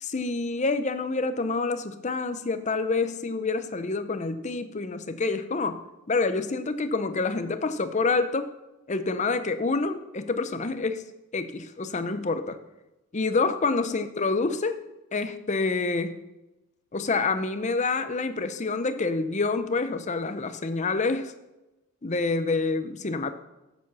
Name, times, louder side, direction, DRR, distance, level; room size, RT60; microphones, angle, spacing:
voice 1, 0.0-5.8 6.1-8.5 8.9-11.1 11.3-12.6 13.1-14.8 15.1-16.2 16.9-21.3 22.0-23.3, left 3 dB, 35° left, 10 dB, 0.6 m, -27 dB
8.7 x 7.4 x 6.1 m, 0.99 s
head